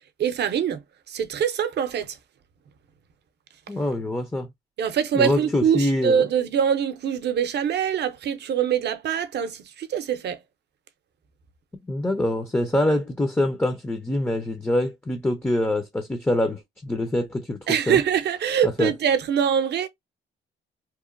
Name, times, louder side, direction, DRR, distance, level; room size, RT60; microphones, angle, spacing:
voice 1, 0.2-0.8 1.1-2.2 4.8-10.4 17.7-19.9, right 8 dB, 60° right, 0.6 m, -24 dB
voice 2, 3.7-4.5 5.1-6.3 11.9-17.6 17.9-18.0 18.8-18.9, left 1 dB, 10° left, 0.5 m, -24 dB
2.9 x 2.1 x 2.4 m
cardioid pair, 90°, 20 cm